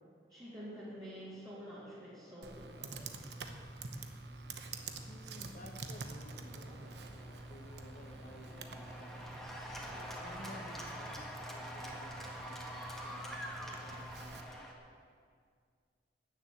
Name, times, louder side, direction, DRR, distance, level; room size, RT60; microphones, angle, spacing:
voice 1, 0.3-2.9, equal, 20° right, -10 dB, 3.1 m, -48 dB
Computer keyboard, 2.4-14.4, right 3 dB, 70° right, 0.9 m, -47 dB
voice 2, 5.1-9.4 10.2-14.7, left 1 dB, 50° left, 4 dB, 1.3 m, -55 dB
Cheering / Applause, 5.1-14.7, equal, ahead, 1.5 m, -47 dB
13.5 x 7.2 x 8.6 m, 2.1 s
head